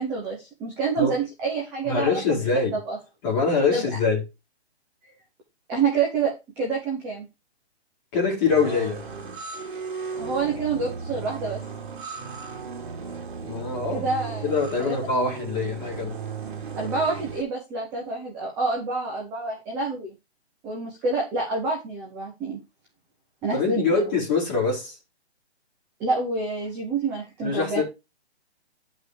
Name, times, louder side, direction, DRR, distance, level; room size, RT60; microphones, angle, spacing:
voice 1, 0.0-2.5 2.7-3.0 3.7-3.8 5.7-7.3 10.2-11.6 13.9-14.5 14.8-14.9 16.8-20.1 20.6-22.6 23.4-24.0 26.0-27.8, right 4 dB, 5° right, 0.8 m, -27 dB
voice 2, 1.9-2.8 3.2-4.2 8.1-9.0 13.4-14.1 14.4-16.1 23.5-25.0 27.4-27.8, left 4 dB, 20° left, 4.1 m, -24 dB
sound 1, 8.5-17.4, right 5 dB, 45° right, 3.1 m, -35 dB
11.5 x 5.4 x 4.7 m
hypercardioid pair, 170°, 33 cm